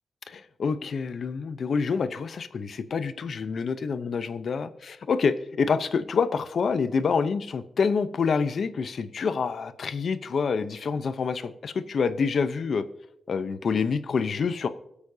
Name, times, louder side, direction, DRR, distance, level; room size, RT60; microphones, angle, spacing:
voice 1, 0.3-12.9 13.3-14.7, left 5 dB, 65° left, 12 dB, 0.8 m, -27 dB
25.0 x 8.4 x 2.8 m, 0.82 s
wide cardioid pair, 100°, 0 cm